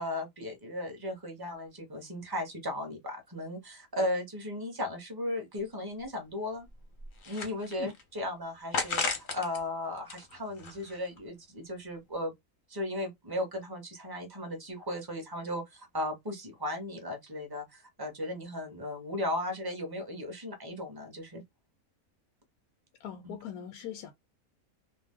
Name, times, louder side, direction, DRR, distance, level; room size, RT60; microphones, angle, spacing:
voice 1, 0.0-6.7 7.3-12.3 12.7-21.4 23.2-23.3, left 1 dB, 20° right, 0.7 m, -36 dB
sound 1, 5.6-5.7 6.0-6.1 6.7-8.0 8.7-9.6 10.0-11.2, left 4 dB, 50° left, 0.6 m, -35 dB
voice 2, 23.0-24.1, left 10 dB, 90° left, 1.1 m, -40 dB
2.5 x 2.1 x 3.5 m
omnidirectional pair, 1.5 m